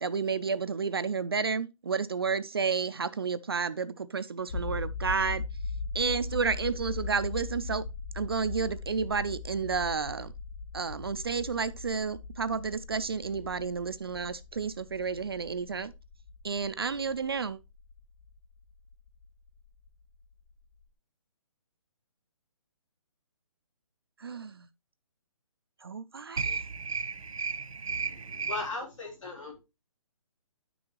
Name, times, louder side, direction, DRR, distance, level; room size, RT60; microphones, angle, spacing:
voice 1, 0.0-5.4 5.9-7.8 8.1-10.3 10.7-15.9 16.4-17.6 24.2-24.7 25.8-26.4, right 5 dB, 45° right, 0.4 m, -31 dB
sound 1, 4.5-20.5 20.8-20.9, left 3 dB, 45° left, 0.9 m, -40 dB
voice 2, 26.4-28.6, right 5 dB, 75° right, 1.6 m, -33 dB
voice 3, 28.5-29.6, left 3 dB, 60° left, 3.5 m, -37 dB
9.9 x 6.1 x 3.0 m
hypercardioid pair, 175°, 18 cm